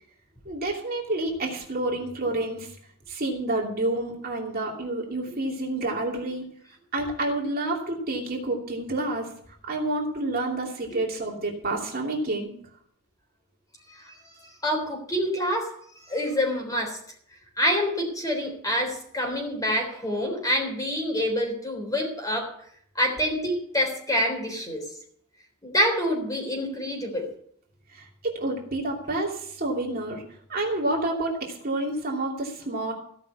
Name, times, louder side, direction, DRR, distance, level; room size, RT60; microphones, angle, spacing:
voice 1, 0.4-2.7 3.1-6.4 6.9-9.3 9.7-12.5 27.9-28.0 28.3-30.2 30.5-32.9, right 2 dB, 45° right, -1 dB, 2.8 m, -29 dB
voice 2, 13.9-17.0 17.6-22.5 23.0-24.8 25.6-27.3, equal, 15° left, 2 dB, 3.6 m, -27 dB
16.5 x 6.0 x 8.2 m, 0.65 s
head